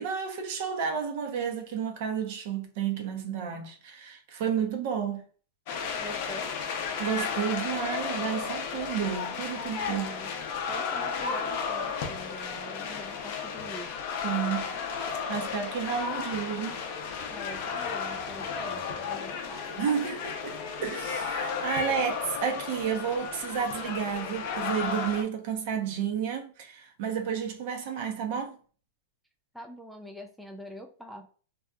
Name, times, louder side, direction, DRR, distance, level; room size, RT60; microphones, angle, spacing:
voice 1, 0.0-5.2 7.0-10.1 14.2-14.7 15.0-16.8 19.8-28.6, right 7 dB, 55° right, 0.7 m, -31 dB
sound 1, 5.7-25.2, left 6 dB, 55° left, 0.6 m, -33 dB
voice 2, 6.0-6.5 9.9-10.4 10.7-13.9 17.3-19.8 29.5-31.3, equal, ahead, 0.3 m, -44 dB
2.7 x 2.3 x 2.3 m
supercardioid pair, 140°, 0 cm